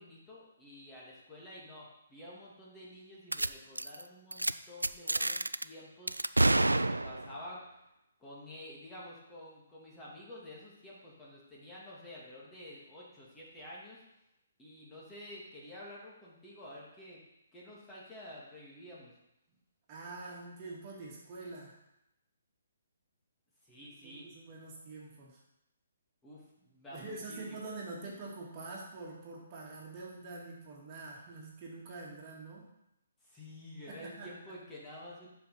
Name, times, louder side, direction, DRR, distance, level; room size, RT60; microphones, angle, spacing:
voice 1, 0.0-6.2 6.6-7.6 8.2-14.0 14.6-17.2 17.5-19.1 23.6-24.3 26.2-27.7 33.2-35.3, left 1 dB, 10° left, -6 dB, 2.2 m, -50 dB
sound 1, 3.3-3.5 3.8-4.0 4.3-4.5 4.8-5.6 6.1-7.4, right 2 dB, 90° right, 0.3 m, -28 dB
voice 2, 19.9-21.8 24.0-25.4 26.9-32.7 33.9-34.3, right 3 dB, 30° right, -4 dB, 2.2 m, -45 dB
6.9 x 5.3 x 5.8 m, 0.86 s
figure-of-eight pair, 135°, 0 cm